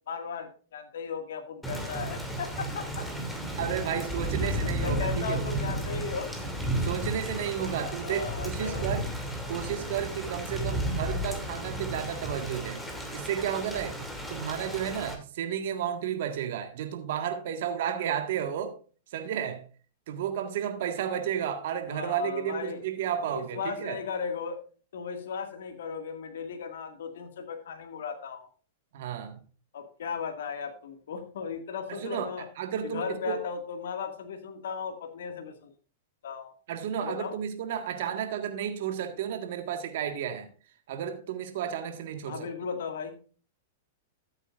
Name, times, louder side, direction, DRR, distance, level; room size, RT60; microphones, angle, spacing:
voice 1, 0.1-3.1 4.4-6.5 8.0-8.9 21.9-22.8 23.2-24.6 24.9-28.5 29.7-32.5 32.8-35.7 36.2-36.5 37.0-37.3 42.3-43.1, left 6 dB, 75° left, 1.9 m, -36 dB
Thunder / Rain, 1.6-15.1, right 1 dB, 5° left, 2.7 m, -33 dB
voice 2, 3.6-5.4 6.7-9.1 9.5-12.8 13.1-14.0 14.3-18.8 19.1-19.6 20.1-24.0 28.9-29.4 31.9-33.4 36.7-40.5 40.9-42.5, right 9 dB, 65° right, 1.7 m, -32 dB
14.0 x 8.3 x 2.5 m
hypercardioid pair, 120°, 0 cm